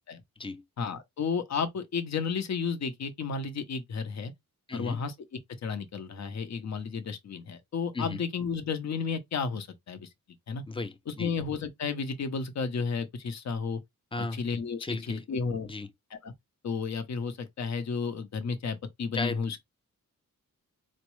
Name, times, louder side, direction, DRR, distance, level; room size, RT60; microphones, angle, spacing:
voice 1, 0.8-4.3 4.7-5.1 5.6-10.1 10.5-10.6 11.1-13.8 14.3-15.7 16.1-16.3 16.6-19.6, left 5 dB, 55° left, 0.7 m, -32 dB
voice 2, 4.7-5.0 7.9-8.2 10.7-11.3 14.1-14.4 14.8-15.3 15.6-15.9 19.1-19.6, left 3 dB, 15° left, 0.4 m, -35 dB
4.4 x 2.0 x 3.0 m
wide cardioid pair, 150°, 34 cm